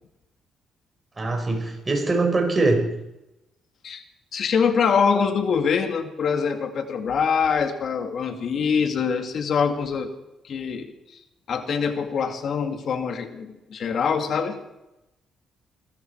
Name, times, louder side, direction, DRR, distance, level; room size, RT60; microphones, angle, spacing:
voice 1, 1.2-2.9, right 3 dB, 25° right, 3 dB, 4.7 m, -22 dB
voice 2, 4.3-10.1 10.4-10.9 11.5-14.6, left 6 dB, 60° left, 7 dB, 2.0 m, -24 dB
22.0 x 14.0 x 4.6 m, 0.94 s
cardioid pair, 90°, 0 cm